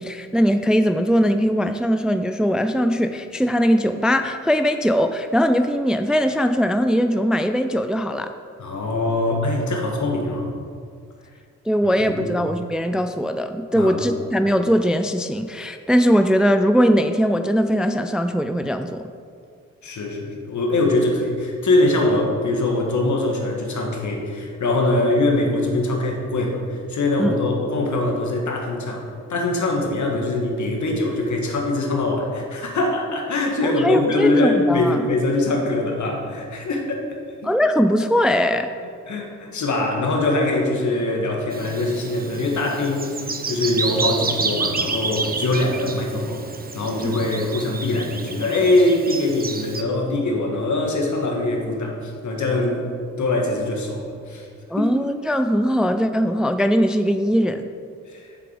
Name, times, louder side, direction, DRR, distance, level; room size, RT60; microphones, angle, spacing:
voice 1, 0.0-8.3 11.7-19.0 27.2-27.4 33.6-35.1 37.4-38.7 54.7-57.7, equal, ahead, 9 dB, 0.4 m, -20 dB
voice 2, 8.6-10.5 12.0-12.3 13.7-14.0 19.8-29.0 29.3-37.0 37.4-37.5 39.1-43.1 43.4-46.4 46.7-54.5 54.8-54.9 58.1-58.3, left 2 dB, 60° left, 1 dB, 1.7 m, -22 dB
Bird vocalization bird call bird song, 41.5-49.8, right 4 dB, 30° right, 0.8 m, -29 dB
7.0 x 6.7 x 5.2 m, 2.3 s
supercardioid pair, 50°, 32 cm